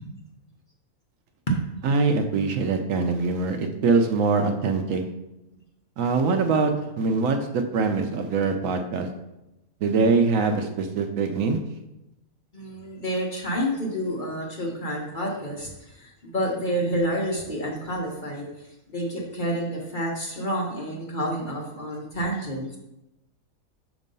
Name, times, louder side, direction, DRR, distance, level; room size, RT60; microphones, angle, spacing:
voice 1, 1.8-5.0 6.0-9.1 9.8-11.6, right 4 dB, 70° right, 5 dB, 0.9 m, -23 dB
voice 2, 12.5-18.5 18.9-22.8, equal, 40° left, -1 dB, 0.8 m, -29 dB
6.3 x 3.0 x 5.2 m, 0.92 s
omnidirectional pair, 1.6 m